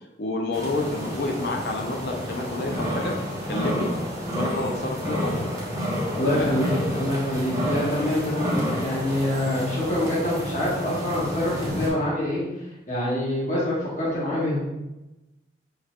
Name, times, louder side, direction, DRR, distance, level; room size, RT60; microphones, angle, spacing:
voice 1, 0.2-3.2 3.5-3.9 4.3-5.5 6.2-6.5, left 2 dB, 60° left, 1 dB, 0.5 m, -29 dB
sound 1, 0.5-11.9, equal, 20° right, 1.0 m, -30 dB
voice 2, 6.1-12.4 12.9-14.6, left 1 dB, 40° left, -7 dB, 1.5 m, -25 dB
6.4 x 3.2 x 2.4 m, 0.99 s
head